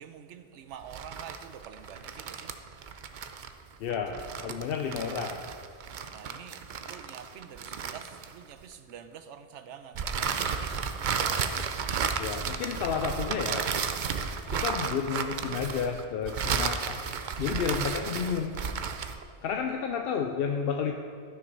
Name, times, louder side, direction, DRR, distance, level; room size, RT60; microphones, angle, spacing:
voice 1, 0.0-2.5 6.0-10.9, right 8 dB, 90° right, 9 dB, 1.0 m, -47 dB
sound 1, 0.8-8.6 10.0-19.2, right 6 dB, 55° right, 0.6 m, -33 dB
voice 2, 3.8-5.4 12.2-13.7 14.5-17.1 17.4-18.6 19.4-20.9, left 6 dB, 65° left, 4 dB, 0.7 m, -31 dB
12.0 x 6.4 x 5.4 m, 2.2 s
omnidirectional pair, 1.2 m